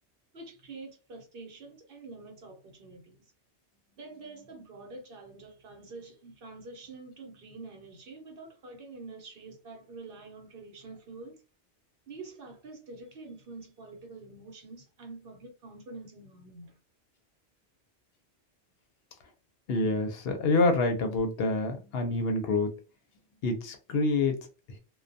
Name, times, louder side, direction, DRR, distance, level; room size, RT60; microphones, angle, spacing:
voice 1, 0.3-3.2 4.0-11.4 12.1-16.8, right 3 dB, 60° right, 0.8 m, -46 dB
voice 2, 19.7-22.7 23.4-24.8, left 3 dB, 65° left, 0.8 m, -27 dB
2.2 x 2.2 x 2.5 m
omnidirectional pair, 1.1 m